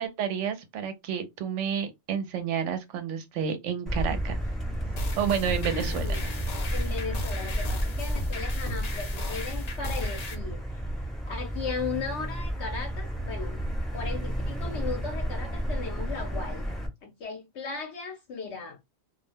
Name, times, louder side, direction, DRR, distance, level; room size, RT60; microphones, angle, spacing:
voice 1, 0.0-4.4 5.2-6.2, right 7 dB, 75° right, 0.9 m, -30 dB
Motor vehicle (road), 3.9-16.9, right 1 dB, ahead, 0.6 m, -32 dB
sound 1, 5.0-10.3, left 2 dB, 45° left, 0.6 m, -35 dB
Strum, 5.6-10.2, right 2 dB, 40° right, 0.4 m, -48 dB
voice 2, 5.9-6.4 6.7-10.6 11.3-13.6 13.9-18.8, left 5 dB, 70° left, 0.9 m, -37 dB
2.4 x 2.1 x 3.2 m
omnidirectional pair, 1.3 m